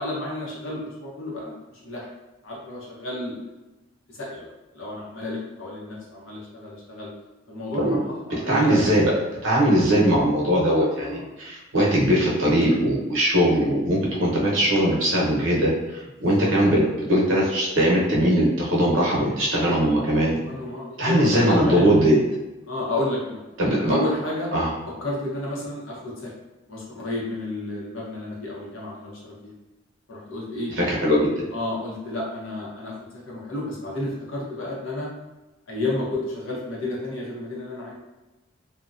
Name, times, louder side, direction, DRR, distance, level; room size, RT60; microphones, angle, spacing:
voice 1, 0.0-1.5 1.8-2.1 2.4-3.4 4.1-4.5 4.7-7.1 7.5-8.0 8.3-8.8 11.0-11.2 16.2-16.5 20.5-21.9 22.7-23.4 23.8-24.5 25.0-26.3 26.7-29.5 30.1-30.7 31.5-33.0 33.3-35.1 35.7-37.9, left 1 dB, 80° left, -4 dB, 0.8 m, -31 dB
voice 2, 8.5-9.1 9.4-16.8 17.1-20.4 21.0-22.2 23.6-24.0 24.5-24.7 30.8-31.3, equal, 75° right, -4 dB, 0.8 m, -20 dB
2.7 x 2.1 x 2.4 m, 1.1 s
head